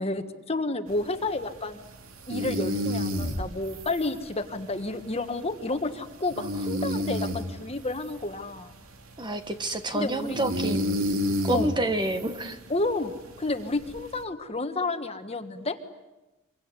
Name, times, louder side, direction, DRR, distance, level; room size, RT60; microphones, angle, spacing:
voice 1, 0.0-1.8 2.3-8.7 9.9-10.4 11.5-11.7 12.7-13.1 13.4-15.8, left 2 dB, 30° left, 8 dB, 1.5 m, -30 dB
sound 1, 0.9-14.2, equal, 85° right, 2.6 m, -33 dB
voice 2, 9.2-11.0 11.4-12.6, right 1 dB, 20° right, 8 dB, 1.5 m, -29 dB
25.5 x 24.0 x 9.8 m, 1.0 s
head